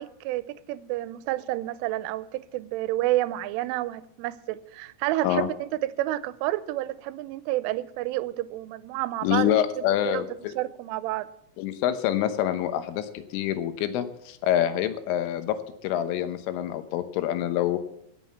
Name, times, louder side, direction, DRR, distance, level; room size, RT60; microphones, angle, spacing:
voice 1, 0.0-10.3 10.6-11.3, right 16 dB, 85° right, 3.2 m, -30 dB
voice 2, 9.2-10.5 11.6-17.8, left 11 dB, 90° left, 3.6 m, -26 dB
17.0 x 7.9 x 7.2 m
omnidirectional pair, 5.6 m